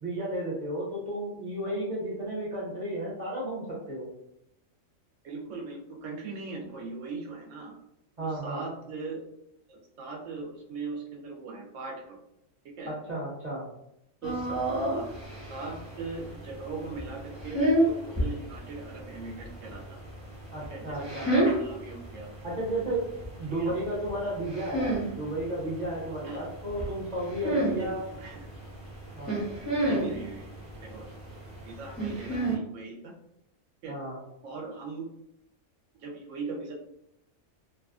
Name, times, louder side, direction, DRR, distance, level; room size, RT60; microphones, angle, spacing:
voice 1, 0.0-4.1 8.2-8.6 12.9-13.6 20.5-21.3 22.4-23.0 23.4-28.0 29.2-29.4 33.9-34.2, right 1 dB, 40° right, -6 dB, 0.8 m, -33 dB
voice 2, 5.2-7.8 8.2-9.3 9.7-12.2 12.8-12.9 14.2-14.6 14.9-15.1 15.5-20.0 20.7-22.3 23.5-23.7 26.2-26.4 27.8-27.9 28.2-28.5 29.8-30.5 30.8-31.1 31.7-33.1 33.8-33.9 34.4-35.1 36.0-36.7, right 3 dB, 70° right, 1 dB, 1.0 m, -39 dB
sound 1, 14.2-32.6, right 1 dB, 15° right, 1.0 m, -32 dB
2.6 x 2.4 x 2.4 m, 0.80 s
omnidirectional pair, 1.4 m